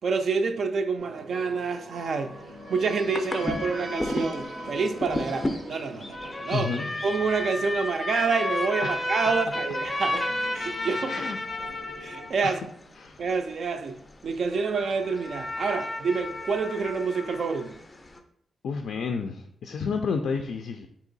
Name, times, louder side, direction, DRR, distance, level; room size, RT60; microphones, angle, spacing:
voice 1, 0.0-2.3 2.7-6.7 7.0-10.3 10.5-11.2 12.0-12.6 13.2-14.0 14.2-17.8, right 5 dB, 55° right, 0.3 m, -28 dB
sound 1, 1.0-8.8 9.9-12.5, right 1 dB, 85° right, 0.7 m, -44 dB
sound 2, 2.1-18.2, left 1 dB, 20° left, 0.4 m, -33 dB
voice 2, 6.5-6.9 8.8-9.0 11.1-11.4 12.4-12.7 13.0-13.2 18.6-20.9, left 5 dB, 90° left, 0.3 m, -30 dB
3.7 x 2.8 x 4.0 m
wide cardioid pair, 170°, 0 cm